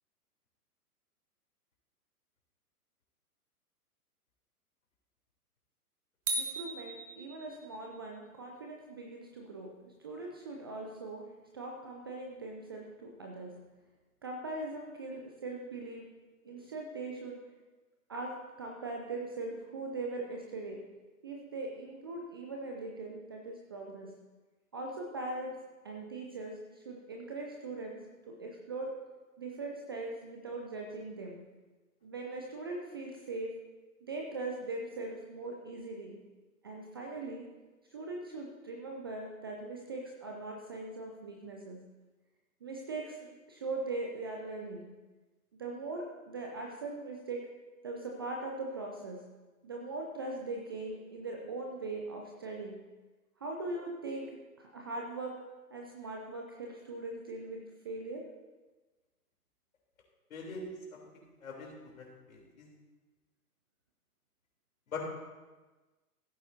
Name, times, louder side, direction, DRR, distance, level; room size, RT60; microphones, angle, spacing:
voice 1, 6.3-13.5 14.2-16.1 16.4-17.4 18.1-20.8 21.2-24.1 24.7-25.6 25.8-28.9 29.4-31.4 32.0-33.5 34.0-36.2 36.6-37.5 37.9-41.8 42.6-43.2 43.5-44.9 45.6-47.5 47.8-49.2 49.6-52.8 53.4-54.3 54.6-55.4 55.7-58.2, right 2 dB, 15° right, 0 dB, 0.4 m, -40 dB
sound 1, 6.3-7.9, right 2 dB, 55° right, 1.6 m, -37 dB
voice 2, 60.3-60.7 61.4-61.7 62.0-62.7 64.9-65.0, left 4 dB, 60° left, -2 dB, 3.6 m, -42 dB
16.0 x 8.8 x 2.8 m, 1.2 s
figure-of-eight pair, 120°, 46 cm